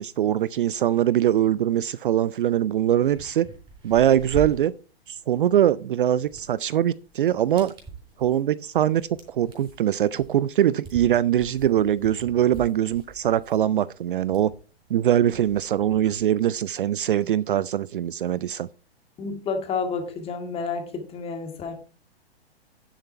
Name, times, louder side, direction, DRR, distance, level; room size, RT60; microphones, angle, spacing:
voice 1, 0.0-3.5 3.8-4.7 5.1-7.7 8.2-14.5 14.9-18.7, right 11 dB, 55° right, 0.5 m, -22 dB
sound 1, 3.0-16.3, right 3 dB, 15° right, 4.2 m, -43 dB
voice 2, 19.2-21.7, left 5 dB, 20° left, 2.0 m, -30 dB
11.0 x 6.7 x 4.5 m
figure-of-eight pair, 120°, 32 cm